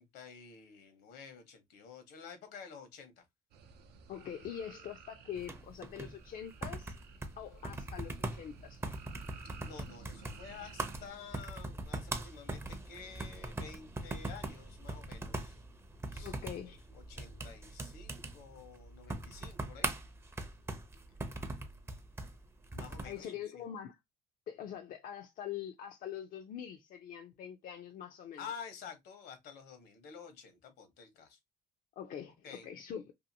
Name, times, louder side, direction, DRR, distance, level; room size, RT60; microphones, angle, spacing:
voice 1, 0.0-3.3 9.6-15.6 16.1-16.3 16.9-19.9 22.7-23.6 28.4-31.4 32.4-32.7, left 6 dB, 75° left, 1.0 m, -50 dB
sound 1, 3.5-11.1, right 6 dB, 75° right, 0.5 m, -55 dB
voice 2, 4.1-6.9 7.4-9.0 16.2-16.9 23.0-24.0 24.5-28.4 32.0-33.1, left 9 dB, 55° left, 0.5 m, -44 dB
sound 2, 5.3-23.2, right 2 dB, 15° right, 0.5 m, -42 dB
2.7 x 2.5 x 2.6 m
cardioid pair, 110°, 17 cm